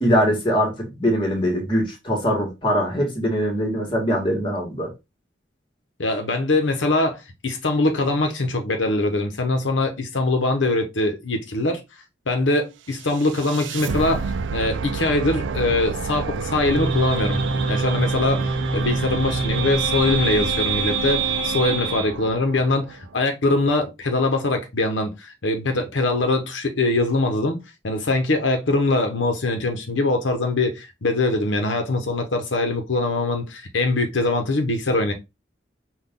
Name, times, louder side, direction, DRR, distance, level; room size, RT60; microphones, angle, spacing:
voice 1, 0.0-4.9, equal, 25° left, 1.6 m, -22 dB
voice 2, 6.0-11.8 12.3-17.4 17.7-27.6 27.8-35.1, left 2 dB, 80° left, 0.9 m, -22 dB
sound 1, 12.9-23.1, right 5 dB, 80° right, 0.4 m, -30 dB
sound 2, 16.7-22.1, right 3 dB, 25° right, 1.0 m, -25 dB
5.9 x 2.5 x 3.6 m
head